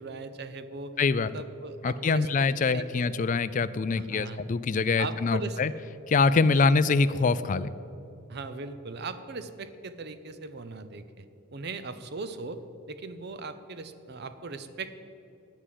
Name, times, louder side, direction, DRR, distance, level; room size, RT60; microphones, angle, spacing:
voice 1, 0.0-3.0 4.0-4.4 5.0-5.6 8.3-15.0, right 3 dB, 50° right, 12 dB, 0.6 m, -39 dB
voice 2, 1.0-1.3 1.8-5.7 6.1-7.7, left 4 dB, 35° left, 14 dB, 0.3 m, -24 dB
10.0 x 9.3 x 7.6 m, 2.8 s
head